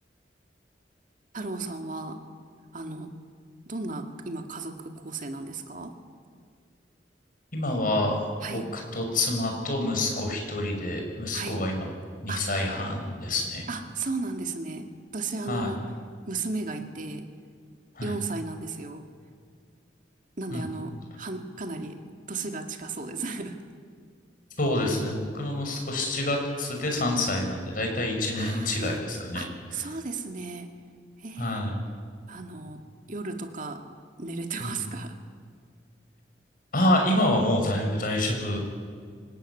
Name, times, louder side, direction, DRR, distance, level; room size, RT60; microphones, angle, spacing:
voice 1, 1.3-2.3 2.7-3.1 3.7-6.0 8.4-8.7 11.3-11.6 12.3-12.5 13.7-15.8 16.3-17.3 18.0-19.1 20.4-23.6 28.3-29.0 29.3-30.7 31.2-31.6 32.3-33.9 34.2-35.2, right 3 dB, 50° right, 5 dB, 2.1 m, -35 dB
voice 2, 7.5-8.1 8.5-8.6 8.9-11.9 12.2-13.6 15.5-15.7 17.9-18.1 20.5-20.6 24.6-29.4 31.4-31.8 34.6-34.8 36.7-38.6, left 1 dB, 55° left, 2 dB, 6.1 m, -27 dB
24.5 x 20.5 x 9.8 m, 2.1 s
head